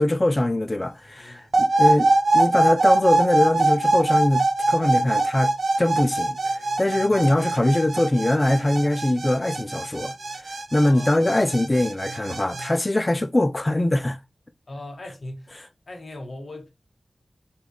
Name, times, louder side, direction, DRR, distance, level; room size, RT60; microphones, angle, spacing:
voice 1, 0.0-5.5 5.8-10.1 10.7-14.2, left 1 dB, 25° left, 0.3 m, -22 dB
voice 2, 1.1-1.5 7.1-7.3 10.7-11.2 14.7-15.5 15.9-16.7, left 1 dB, 55° left, 0.7 m, -39 dB
sound 1, 1.5-12.7, right 2 dB, 80° right, 0.5 m, -23 dB
3.5 x 2.4 x 3.3 m
wide cardioid pair, 90°, 0 cm